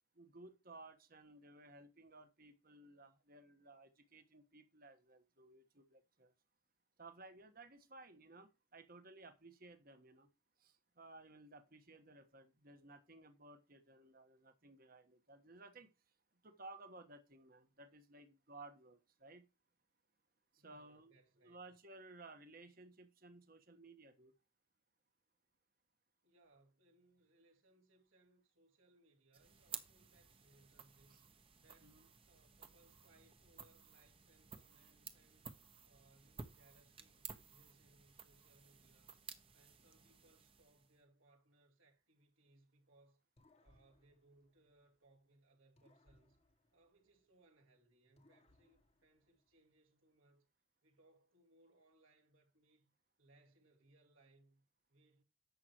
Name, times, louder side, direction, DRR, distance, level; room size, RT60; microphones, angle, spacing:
voice 1, 0.1-6.3 7.0-10.3 10.6-15.9 16.4-19.4 20.5-21.1 21.4-24.3 31.1-31.2 31.8-32.1, right 2 dB, 45° right, 1.3 m, -58 dB
voice 2, 20.6-21.6 26.2-35.5 35.8-39.2 39.5-43.2 43.6-46.4 46.7-50.5 50.8-52.9 53.2-55.2, right 2 dB, 75° right, 2.8 m, -71 dB
sound 1, 29.3-41.0, right 6 dB, 25° right, 1.0 m, -55 dB
sound 2, 43.4-45.3 45.8-47.6 48.2-49.9, left 1 dB, 30° left, 1.1 m, -73 dB
11.0 x 7.5 x 3.0 m
head